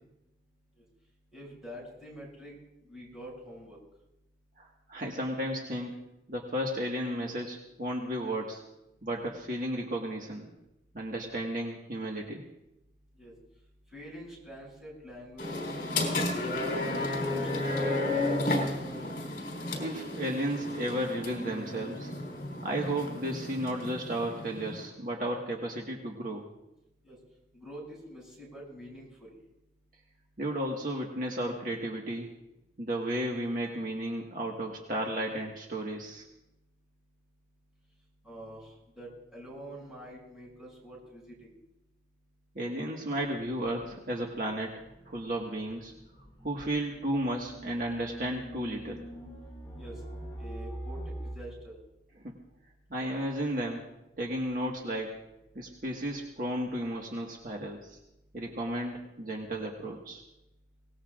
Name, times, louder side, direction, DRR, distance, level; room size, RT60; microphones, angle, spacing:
voice 1, 1.3-2.6 2.8-3.8 13.2-13.3 13.9-15.6 16.2-16.8 17.1-18.7 27.0-27.2 27.5-29.3 38.2-41.5 49.8-50.0 50.4-51.8, equal, 5° right, -5 dB, 7.1 m, -46 dB
voice 2, 4.6-5.9 6.3-8.6 9.0-10.5 10.9-12.4 19.8-22.1 22.6-26.4 30.4-32.3 32.8-36.2 42.5-45.9 46.4-49.0 52.2-52.3 52.9-53.8 54.2-55.2 55.5-58.0 58.3-60.2, right 1 dB, 50° right, -1 dB, 1.7 m, -33 dB
sound 1, 15.4-24.9, left 2 dB, 50° left, 4.0 m, -33 dB
sound 2, 43.5-51.3, right 1 dB, 15° left, 5.8 m, -44 dB
24.0 x 19.0 x 2.5 m, 0.89 s
head